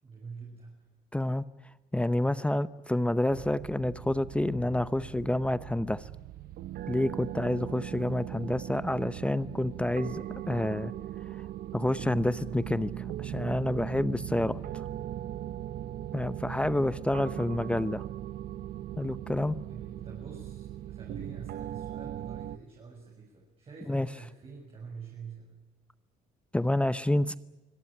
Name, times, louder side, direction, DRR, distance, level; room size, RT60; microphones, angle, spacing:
voice 1, 0.0-0.9 17.2-17.7 19.7-25.6, right 5 dB, 35° right, -1 dB, 6.7 m, -47 dB
voice 2, 1.1-1.4 1.9-6.1 6.9-10.9 11.3-11.4 11.7-14.8 16.1-18.0 19.0-19.6 23.9-24.1 26.5-27.3, left 1 dB, 5° left, 14 dB, 0.7 m, -29 dB
sound 1, 3.3-22.6, right 12 dB, 65° right, 0.8 m, -39 dB
25.0 x 18.0 x 8.6 m, 1.1 s
cardioid pair, 110°, 17 cm